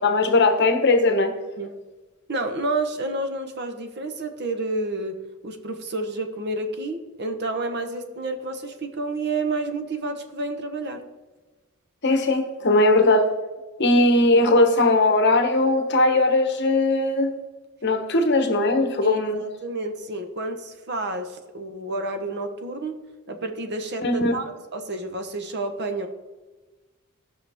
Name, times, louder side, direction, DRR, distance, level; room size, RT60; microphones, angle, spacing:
voice 1, 0.0-1.3 12.0-13.3 13.8-17.3 17.8-19.4 24.0-24.3, left 2 dB, 50° left, 6 dB, 1.1 m, -19 dB
voice 2, 2.3-5.2 5.4-11.0 19.0-22.9 23.3-26.1, right 2 dB, 50° right, 6 dB, 1.0 m, -30 dB
17.5 x 5.9 x 3.5 m, 1.2 s
head